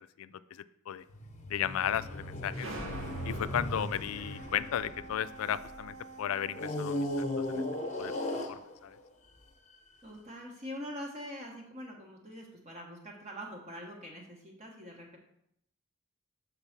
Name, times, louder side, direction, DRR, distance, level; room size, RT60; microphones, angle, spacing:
voice 1, 0.2-1.0 1.5-2.7 3.2-7.6 8.0-8.1 8.5-9.0, left 9 dB, 85° left, 15 dB, 0.3 m, -35 dB
sound 1, 1.1-5.8 6.5-9.1 9.7-9.9, left 1 dB, 35° left, 1.0 m, -37 dB
sound 2, 2.5-7.0, right 1 dB, 75° right, 1.3 m, -45 dB
Brass instrument, 4.1-8.5, right 3 dB, 60° right, 0.8 m, -50 dB
voice 2, 10.0-15.2, equal, 30° right, -2 dB, 1.2 m, -44 dB
6.8 x 3.8 x 5.9 m, 0.75 s
head